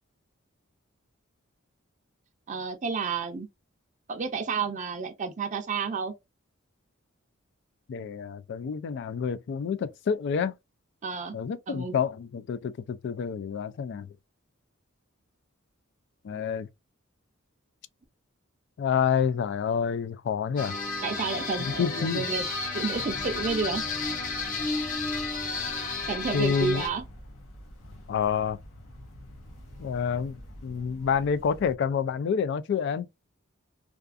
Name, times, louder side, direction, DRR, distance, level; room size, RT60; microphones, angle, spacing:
voice 1, 2.5-3.5 4.1-6.1 11.0-11.4 11.7-12.0 21.0-22.4 22.7-23.8 26.1-27.0, right 5 dB, 35° right, 0.4 m, -30 dB
voice 2, 7.9-10.5 11.3-14.1 16.2-16.7 18.8-20.8 21.8-22.2 26.3-26.8 28.1-28.6 29.8-33.1, left 7 dB, 60° left, 0.3 m, -28 dB
sound 1, 20.6-26.9, left 3 dB, 40° left, 0.7 m, -32 dB
sound 2, 22.9-31.8, left 1 dB, 75° left, 0.8 m, -46 dB
2.4 x 2.4 x 2.4 m
head